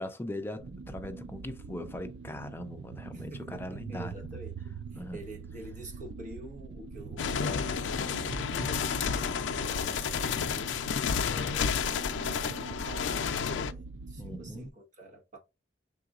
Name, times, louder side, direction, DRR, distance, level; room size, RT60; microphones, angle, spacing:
voice 1, 0.0-4.4 4.9-5.2 11.4-11.5 14.2-14.7, left 1 dB, 10° left, 0.5 m, -40 dB
sound 1, 0.6-14.7, right 4 dB, 80° right, 0.4 m, -43 dB
voice 2, 3.1-15.4, right 1 dB, 45° right, 1.2 m, -48 dB
sound 2, 7.2-13.7, left 6 dB, 85° left, 0.4 m, -31 dB
4.8 x 3.8 x 2.4 m
head